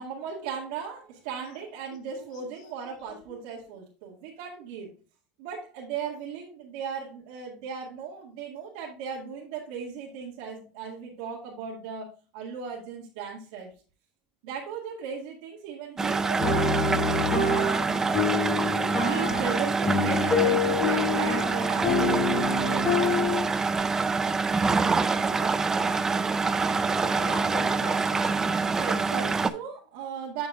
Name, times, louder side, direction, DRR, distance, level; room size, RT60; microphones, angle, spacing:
voice 1, 0.0-4.9 5.4-12.1 12.3-13.7 14.4-18.0 19.0-22.9 25.2-25.6 28.7-30.5, right 6 dB, 75° right, 2.0 m, -37 dB
voice 2, 2.1-2.7 3.1-3.4 26.6-26.7 27.0-28.7, left 6 dB, 80° left, 1.6 m, -43 dB
sound 1, 16.0-29.5, right 4 dB, 15° right, 0.4 m, -26 dB
sound 2, 16.4-23.8, left 4 dB, 25° left, 1.4 m, -27 dB
8.8 x 6.0 x 2.4 m
supercardioid pair, 135°, 3 cm